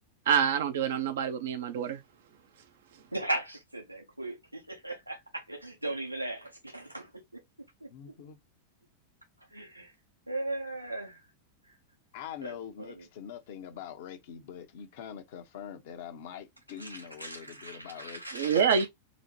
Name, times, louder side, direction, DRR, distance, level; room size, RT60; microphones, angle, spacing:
voice 1, 0.3-2.0 18.3-18.9, right 7 dB, 60° right, 0.6 m, -26 dB
voice 2, 3.1-7.4 7.8-7.9 9.5-9.9 10.3-11.2 12.4-13.0 16.8-18.9, right 2 dB, 85° right, 1.2 m, -38 dB
voice 3, 7.9-8.4 12.1-18.2, left 8 dB, 55° left, 0.7 m, -44 dB
3.9 x 2.1 x 3.0 m
figure-of-eight pair, 90°, 0 cm